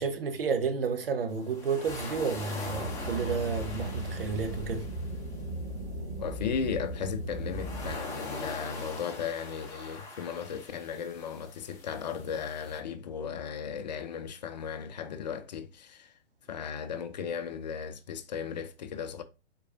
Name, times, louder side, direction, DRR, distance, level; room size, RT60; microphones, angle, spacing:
voice 1, 0.0-4.9, right 5 dB, 60° right, 1.1 m, -31 dB
sound 1, 1.3-5.4 7.4-12.8, left 2 dB, 10° left, 1.2 m, -42 dB
sound 2, 2.6-8.0, right 1 dB, 40° right, 1.7 m, -37 dB
voice 2, 6.2-16.2 16.5-19.2, left 7 dB, 40° left, 0.6 m, -36 dB
4.7 x 4.4 x 2.5 m
figure-of-eight pair, 125°, 32 cm